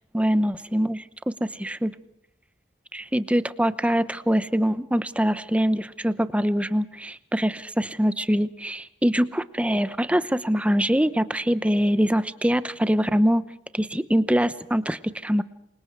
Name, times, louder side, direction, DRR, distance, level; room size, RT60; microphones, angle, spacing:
voice 1, 0.1-1.0 1.4-1.9 2.9-13.4 13.7-15.4, equal, 5° right, 14 dB, 0.8 m, -23 dB
28.5 x 24.5 x 4.6 m, 0.80 s
head